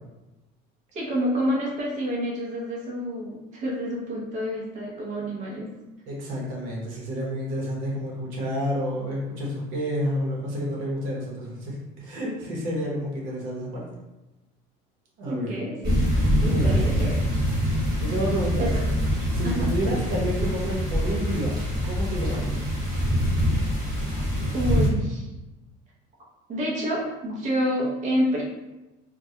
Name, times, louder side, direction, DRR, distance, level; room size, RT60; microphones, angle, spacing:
voice 1, 0.9-5.7 15.2-15.9 16.4-17.3 18.6-18.8 19.4-19.7 24.5-25.3 26.5-28.4, equal, 40° right, -4 dB, 0.6 m, -28 dB
voice 2, 6.1-13.9 15.2-15.6 16.4-16.8 18.0-18.7 19.3-21.5 21.8-22.7, equal, 75° right, -3 dB, 0.8 m, -30 dB
sound 1, 15.8-24.9, equal, 20° right, 1.1 m, -24 dB
2.2 x 2.1 x 2.7 m, 1.0 s
cardioid pair, 125°, 20 cm